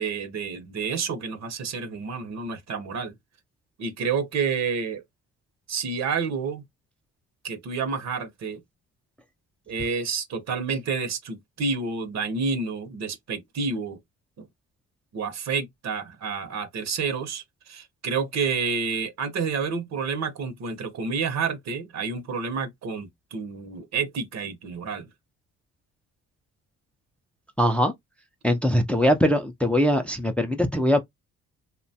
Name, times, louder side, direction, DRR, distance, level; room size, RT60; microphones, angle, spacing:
voice 1, 0.0-3.1 3.8-5.0 5.7-6.6 7.4-8.6 9.7-14.0 14.4-14.5 15.1-25.1, right 5 dB, 60° right, 0.8 m, -29 dB
voice 2, 27.6-27.9 28.4-31.0, equal, 5° left, 0.4 m, -21 dB
2.9 x 2.2 x 2.7 m
cardioid pair, 90°, 30 cm